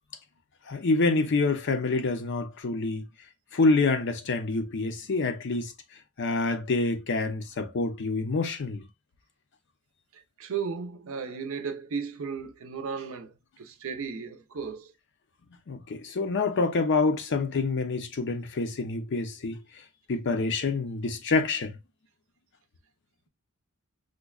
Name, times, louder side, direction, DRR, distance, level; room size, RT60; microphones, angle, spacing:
voice 1, 0.7-3.1 3.5-5.7 6.2-8.8 15.7-19.6 20.1-21.7, left 3 dB, 55° left, 0.6 m, -27 dB
voice 2, 10.4-14.9, right 6 dB, 65° right, 0.6 m, -35 dB
5.0 x 2.2 x 2.3 m
head